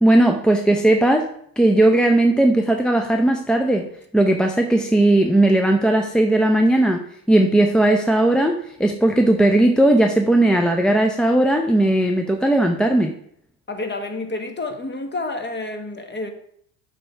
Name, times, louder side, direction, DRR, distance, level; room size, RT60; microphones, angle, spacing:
voice 1, 0.0-1.3 1.6-3.9 4.1-8.5 8.8-13.1, right 1 dB, ahead, 4 dB, 0.5 m, -17 dB
voice 2, 13.7-16.3, left 2 dB, 20° left, 6 dB, 1.2 m, -29 dB
7.5 x 3.5 x 5.6 m, 0.68 s
supercardioid pair, 85°, 48 cm